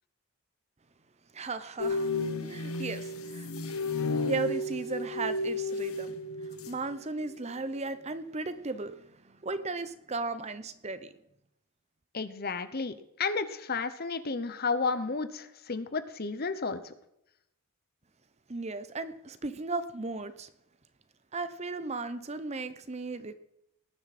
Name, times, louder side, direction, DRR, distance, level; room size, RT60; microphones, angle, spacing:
voice 1, 1.3-2.1 2.4-3.5 4.2-6.1 6.7-11.1 18.5-20.5 21.3-23.3, right 3 dB, 30° right, 12 dB, 0.7 m, -36 dB
sound 1, 1.8-6.9 7.2-7.5, left 2 dB, 70° left, 1.4 m, -33 dB
voice 2, 12.1-16.9, left 4 dB, 45° left, 12 dB, 0.9 m, -32 dB
19.0 x 10.5 x 4.2 m, 0.80 s
head